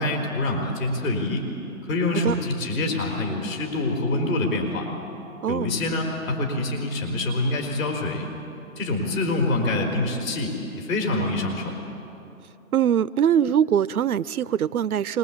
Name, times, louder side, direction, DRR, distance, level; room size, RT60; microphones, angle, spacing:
voice 1, 0.0-1.4 1.8-4.9 5.5-8.3 8.8-11.7, left 2 dB, 65° left, 2 dB, 4.6 m, -26 dB
voice 2, 12.7-15.2, right 9 dB, 85° right, 16 dB, 0.6 m, -22 dB
25.5 x 20.5 x 8.6 m, 2.9 s
hypercardioid pair, 140°, 43 cm